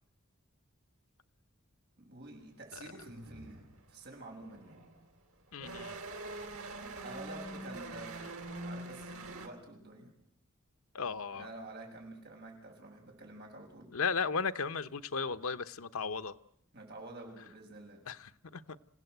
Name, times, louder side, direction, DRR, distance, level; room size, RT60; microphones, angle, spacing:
voice 1, 2.0-3.6 3.9-4.8 7.0-8.2 8.6-10.1 11.3-13.9 16.7-18.0, right 2 dB, 55° right, 1 dB, 6.9 m, -49 dB
sound 1, 2.4-2.5 3.0-5.1 5.5-9.5, right 2 dB, 85° right, 3.0 m, -44 dB
voice 2, 5.5-6.0 10.9-11.5 13.9-16.3 18.1-18.6, left 5 dB, 90° left, 10 dB, 0.9 m, -35 dB
27.5 x 16.5 x 8.1 m, 0.72 s
head